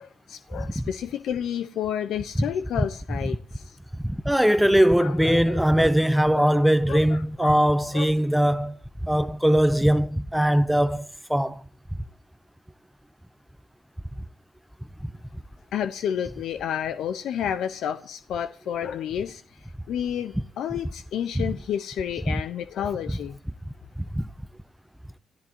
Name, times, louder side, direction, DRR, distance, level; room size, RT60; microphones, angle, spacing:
voice 1, 0.0-3.8 5.0-5.9 6.3-6.5 6.9-7.6 7.9-8.1 15.7-19.4 19.9-23.4, left 9 dB, 75° left, 0.9 m, -31 dB
voice 2, 4.0-11.6 21.4-21.5 22.3-22.4 24.0-24.3, equal, ahead, 0.7 m, -21 dB
29.0 x 14.0 x 3.0 m
cardioid pair, 90°, 0 cm